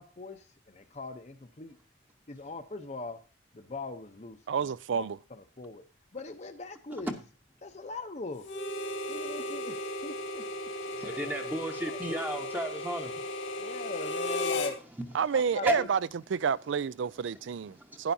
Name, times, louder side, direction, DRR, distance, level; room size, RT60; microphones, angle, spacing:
voice 1, 0.0-1.8 2.3-3.2 3.5-5.8 6.1-7.2 7.6-8.5 9.1-10.7 11.0-11.5 11.9-12.2 13.6-14.8 15.3-15.9, left 3 dB, 35° left, 0.7 m, -42 dB
voice 2, 4.5-5.2 15.1-16.0 16.3-18.1, right 6 dB, 70° right, 0.4 m, -29 dB
Harmonica, 8.4-14.8, left 1 dB, 80° left, 1.9 m, -35 dB
voice 3, 11.0-13.1 15.7-15.8 17.8-18.0, right 1 dB, 10° right, 0.9 m, -33 dB
11.5 x 10.0 x 2.7 m
head